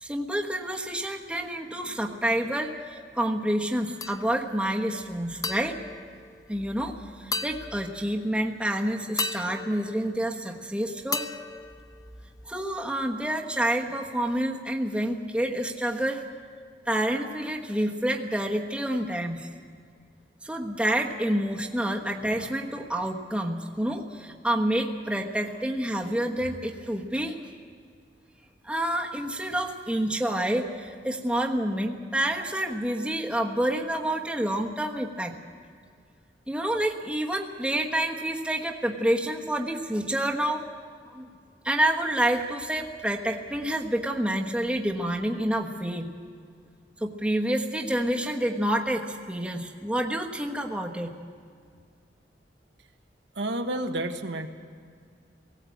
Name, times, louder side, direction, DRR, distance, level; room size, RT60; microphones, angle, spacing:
voice 1, 0.0-5.8 6.5-6.9 7.2-11.3 12.5-16.3 16.9-19.5 20.4-27.5 28.6-35.4 36.5-40.7 41.1-41.2 41.6-46.1 47.0-51.1, right 1 dB, 5° right, 0 dB, 1.2 m, -28 dB
sound 1, 4.0-4.6 5.4-6.9 7.3-8.3 9.2-10.7 11.1-12.5, left 4 dB, 20° left, 0.5 m, -36 dB
voice 2, 53.3-54.5, right 1 dB, 70° right, 5 dB, 1.2 m, -30 dB
18.5 x 16.5 x 8.5 m, 2.1 s
head